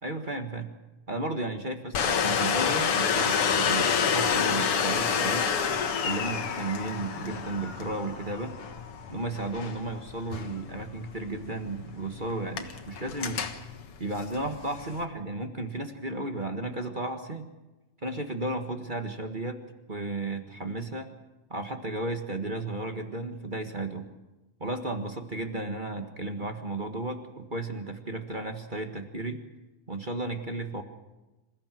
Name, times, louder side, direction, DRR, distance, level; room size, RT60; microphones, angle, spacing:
voice 1, 0.0-0.7 1.1-5.5 6.0-8.5 9.1-13.4 14.0-17.5 18.0-19.6 19.9-21.1 21.5-24.1 24.6-29.4 29.9-30.8, right 2 dB, 35° right, 5 dB, 0.7 m, -34 dB
Domestic sounds home sounds, 1.9-15.0, left 7 dB, 50° left, 2.1 m, -29 dB
27.5 x 16.5 x 7.7 m, 1.1 s
omnidirectional pair, 3.7 m